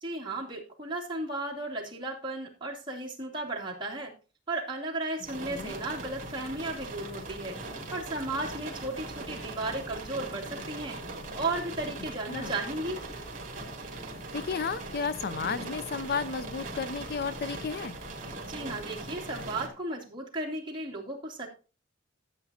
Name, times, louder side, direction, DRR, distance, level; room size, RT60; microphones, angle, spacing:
voice 1, 0.0-4.1 4.5-7.6 7.9-11.0 11.3-13.0 18.4-21.5, right 2 dB, 25° right, -2 dB, 2.8 m, -35 dB
sound 1, 5.2-19.7, right 2 dB, 40° right, 3.0 m, -40 dB
voice 2, 14.3-18.0, left 5 dB, 50° left, 14 dB, 0.5 m, -33 dB
14.0 x 8.2 x 2.8 m, 0.34 s
head